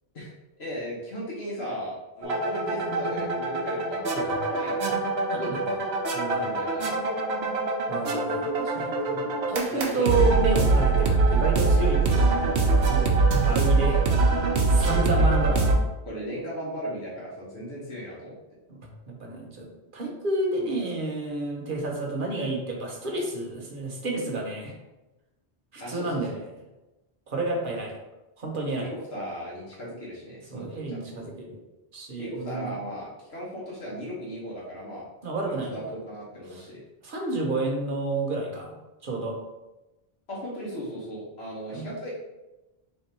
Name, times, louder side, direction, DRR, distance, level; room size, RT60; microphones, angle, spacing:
voice 1, 0.6-4.8 6.3-6.8 8.7-9.0 9.7-10.1 11.7-11.8 14.7-15.2 16.0-18.4 25.8-26.4 28.8-31.2 32.2-35.0 35.4-36.8 40.3-42.1, equal, 80° left, -6 dB, 1.4 m, -37 dB
sound 1, 2.2-15.8, right 3 dB, 85° right, 1.0 m, -23 dB
voice 2, 5.3-5.9 6.1-6.5 7.9-14.0 14.7-15.7 18.7-18.8 19.1-24.7 25.7-26.3 27.3-27.9 28.4-28.9 30.5-31.6 31.9-32.7 35.2-35.9 36.5-36.6 37.0-38.7 39.0-39.4 41.7-41.9, right 2 dB, 55° right, 0 dB, 1.1 m, -30 dB
3.6 x 3.3 x 4.3 m, 1.0 s
omnidirectional pair, 1.1 m